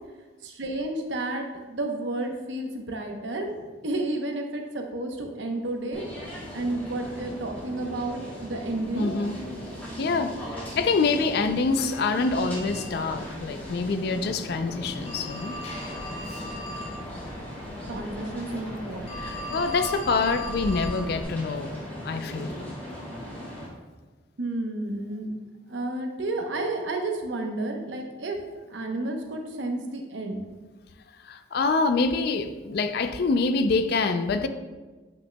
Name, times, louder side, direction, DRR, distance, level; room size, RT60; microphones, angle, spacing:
voice 1, 0.4-6.0 6.5-9.1 17.9-19.1 24.4-25.3 25.7-28.4 28.7-30.5, right 2 dB, 75° right, 3 dB, 0.8 m, -31 dB
sound 1, 5.9-23.7, equal, 10° left, 1.7 m, -39 dB
voice 2, 8.9-9.4 10.0-15.5 19.2-21.7 22.0-22.5 31.2-34.5, left 4 dB, 55° left, 9 dB, 0.4 m, -26 dB
Telephone, 11.4-21.2, left 1 dB, 35° left, 0.7 m, -39 dB
8.0 x 5.7 x 2.2 m, 1.3 s
head